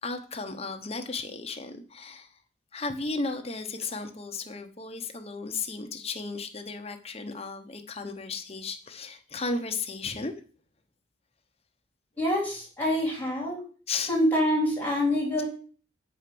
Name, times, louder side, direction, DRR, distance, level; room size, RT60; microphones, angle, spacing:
voice 1, 0.0-2.4 2.7-10.3 13.9-14.1, left 3 dB, 30° left, 5 dB, 1.0 m, -34 dB
voice 2, 12.2-13.6 14.1-15.5, left 1 dB, 10° left, -4 dB, 3.3 m, -26 dB
7.9 x 5.0 x 6.0 m, 0.41 s
head